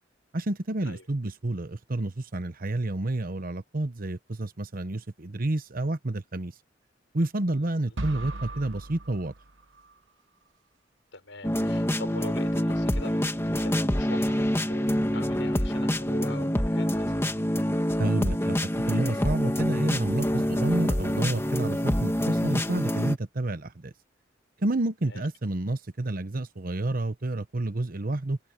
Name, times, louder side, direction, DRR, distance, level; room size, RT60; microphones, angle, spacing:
voice 1, 0.3-6.5 7.1-9.3 18.0-18.6 18.9-23.9 24.6-28.4, right 2 dB, 50° right, 1.0 m, -29 dB
voice 2, 7.5-8.0 11.1-17.3 25.0-25.2, left 2 dB, 80° left, 5.8 m, -43 dB
sound 1, 8.0-10.0, right 2 dB, 80° right, 1.1 m, -38 dB
sound 2, 11.4-23.2, equal, 15° left, 1.8 m, -26 dB
head